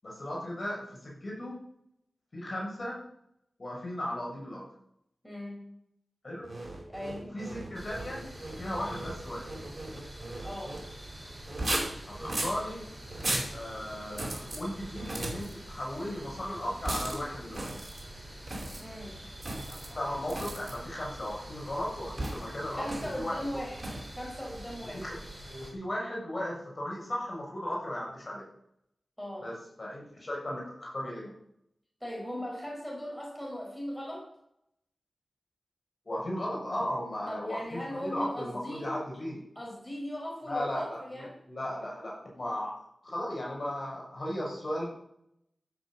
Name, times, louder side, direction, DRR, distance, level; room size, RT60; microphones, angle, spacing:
voice 1, 0.0-1.6 2.3-3.0 3.6-4.7 6.2-6.5 7.2-8.2 8.6-9.5 12.1-12.9 13.5-17.7 19.7-23.6 24.9-25.2 25.5-28.5 29.4-31.3 36.0-39.5 40.5-42.8 43.0-44.9, left 1 dB, 40° left, -3 dB, 6.5 m, -36 dB
voice 2, 5.2-5.6 6.9-7.2 10.4-10.8 18.8-19.2 22.7-23.8 24.1-25.0 29.2-29.5 32.0-34.3 37.3-38.9 39.6-41.3, equal, 5° left, -3 dB, 5.5 m, -38 dB
sound 1, 6.4-10.9 11.5-12.6 13.1-13.5 14.1-14.6 14.9-15.5 16.8-17.2 17.5-18.0 18.5-18.8 19.4-19.9 20.3-20.7 22.2-22.5 22.8-23.2 23.8-24.1, right 2 dB, 40° right, 4.9 m, -36 dB
sound 2, 7.7-25.7, right 1 dB, 10° right, 4.7 m, -46 dB
15.0 x 7.7 x 7.2 m, 0.76 s
wide cardioid pair, 95°, 0 cm